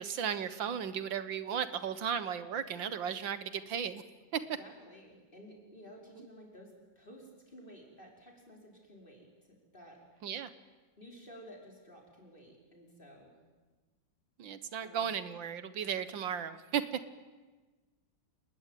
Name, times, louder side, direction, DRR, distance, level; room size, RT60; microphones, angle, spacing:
voice 1, 0.0-4.0 4.3-4.4 10.2-10.5 14.4-17.0, right 8 dB, 80° right, 12 dB, 1.9 m, -35 dB
voice 2, 4.6-10.3 11.0-13.4 14.8-15.1, equal, 25° left, 0 dB, 5.7 m, -54 dB
28.5 x 20.5 x 9.2 m, 1.3 s
omnidirectional pair, 2.0 m